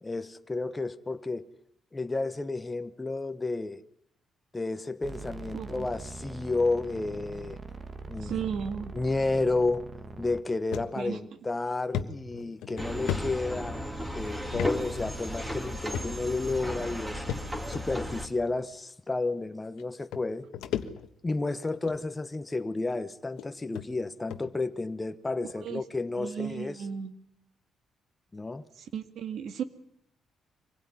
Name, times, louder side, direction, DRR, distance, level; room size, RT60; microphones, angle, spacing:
voice 1, 0.0-1.5 1.9-3.8 4.5-7.6 8.1-8.5 8.9-9.9 10.2-17.2 17.7-20.5 21.2-26.8 28.3-28.7, left 3 dB, 20° left, 1.1 m, -31 dB
sound 1, 5.0-10.4, right 3 dB, 30° right, 1.9 m, -42 dB
voice 2, 5.5-5.9 8.2-8.9 11.0-11.2 25.4-25.8 26.2-27.1 28.9-29.6, right 7 dB, 70° right, 2.2 m, -35 dB
sound 2, 10.7-10.9 11.3-11.4 11.9-14.0 14.5-14.7 15.0-15.2 15.9-16.4 17.3-17.8 18.7-18.8 19.8-19.9 20.1-21.3 21.7-22.0 22.8-22.9 23.4-23.5 23.7-23.9 24.3-24.5, left 9 dB, 85° left, 1.3 m, -35 dB
sound 3, 12.8-18.3, equal, 15° right, 3.2 m, -35 dB
24.5 x 17.0 x 9.8 m
cardioid pair, 90°, 0 cm